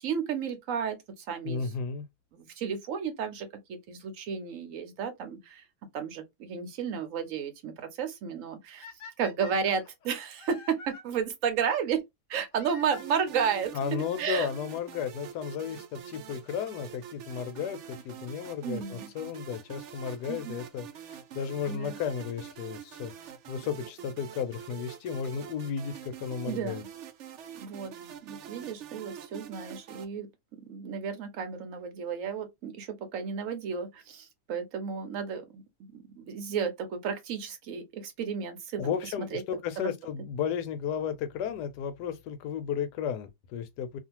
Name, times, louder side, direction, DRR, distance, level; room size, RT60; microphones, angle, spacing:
voice 1, 0.0-1.6 2.3-5.6 5.9-8.9 9.2-12.0 12.3-14.5 18.6-19.1 20.3-20.6 21.7-22.0 26.4-26.9 27.5-27.9 28.2-30.3 30.7-35.6 35.9-39.4 39.8-40.0, right 7 dB, 60° right, 1.0 m, -33 dB
voice 2, 1.4-2.1 13.7-23.1 23.5-26.8 38.8-44.0, left 7 dB, 75° left, 1.1 m, -34 dB
sound 1, 8.8-11.0 12.5-13.6 14.5-14.6 15.3-15.4 15.6-15.7 17.6-17.8 20.6-20.7 21.8-21.9 23.3-23.4 23.7-23.8 24.0-24.1 24.3-24.4 24.6-24.7 24.8-24.9 25.1-25.2, left 4 dB, 60° left, 0.9 m, -48 dB
sound 2, 12.9-30.1, right 9 dB, 85° right, 0.6 m, -45 dB
2.7 x 2.5 x 2.9 m
omnidirectional pair, 1.8 m